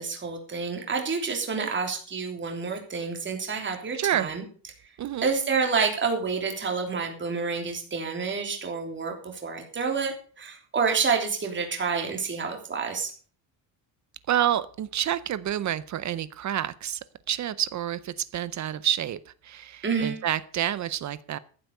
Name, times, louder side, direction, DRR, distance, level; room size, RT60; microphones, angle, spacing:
voice 1, 0.0-4.4 5.2-13.1 19.8-20.2, right 5 dB, 25° right, 3 dB, 3.2 m, -28 dB
voice 2, 4.0-4.3 5.0-5.3 14.3-21.4, right 11 dB, 40° right, 17 dB, 0.6 m, -28 dB
14.0 x 8.1 x 6.6 m, 0.42 s
cardioid pair, 170°, 46 cm